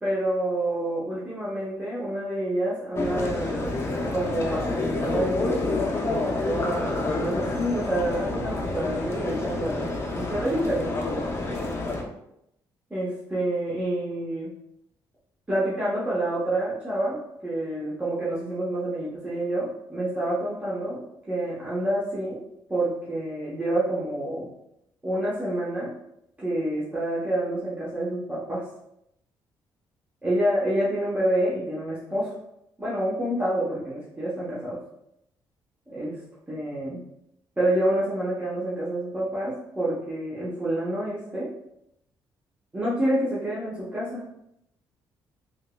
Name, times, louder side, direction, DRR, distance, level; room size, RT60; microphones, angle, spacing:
voice 1, 0.0-3.8 4.1-9.9 10.1-11.0 12.9-14.5 15.5-21.0 21.3-22.4 22.7-24.5 25.0-25.9 26.4-28.6 30.2-32.4 32.8-34.8 35.9-36.2 36.5-37.0 37.6-41.5 42.7-44.2, right 1 dB, 15° right, -9 dB, 0.9 m, -28 dB
sound 1, 3.0-12.0, left 2 dB, 30° left, 0.5 m, -28 dB
3.5 x 2.9 x 2.2 m, 0.79 s
cardioid pair, 105°, 8 cm